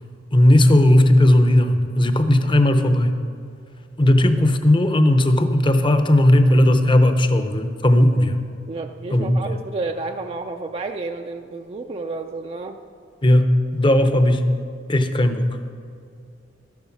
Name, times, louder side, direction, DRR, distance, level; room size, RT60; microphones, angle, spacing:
voice 1, 0.3-3.1 4.0-8.4 9.1-9.4 13.2-14.5 14.9-15.6, left 1 dB, 25° left, 8 dB, 0.8 m, -16 dB
voice 2, 8.7-12.8, right 3 dB, 30° right, 4 dB, 0.4 m, -30 dB
12.5 x 11.0 x 6.0 m, 2.4 s
head